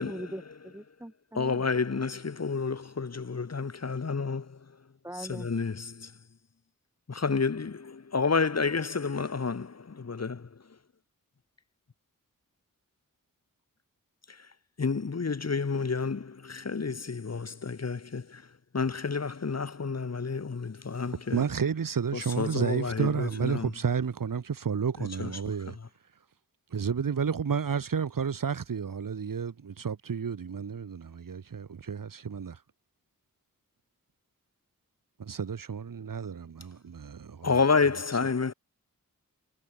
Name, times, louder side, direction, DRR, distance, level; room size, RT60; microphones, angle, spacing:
voice 1, 0.0-1.6 5.0-5.5, right 1 dB, 10° right, 7.2 m, -41 dB
voice 2, 1.3-4.4 5.3-6.1 7.1-10.4 14.8-18.2 18.7-21.4 22.4-23.7 25.2-25.3 37.4-38.5, left 4 dB, 50° left, 2.8 m, -29 dB
voice 3, 21.3-25.8 26.7-32.6 35.2-37.6 37.9-38.0, right 6 dB, 80° right, 3.0 m, -31 dB
wide cardioid pair, 85°, 33 cm